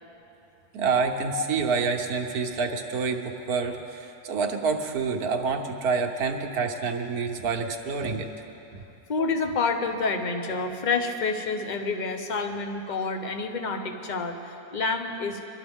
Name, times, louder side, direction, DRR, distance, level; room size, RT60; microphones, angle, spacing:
voice 1, 0.7-8.3, right 5 dB, 80° right, 2 dB, 1.4 m, -27 dB
voice 2, 9.1-15.4, left 4 dB, 35° left, 5 dB, 0.8 m, -28 dB
23.5 x 12.5 x 3.6 m, 2.9 s
omnidirectional pair, 1.6 m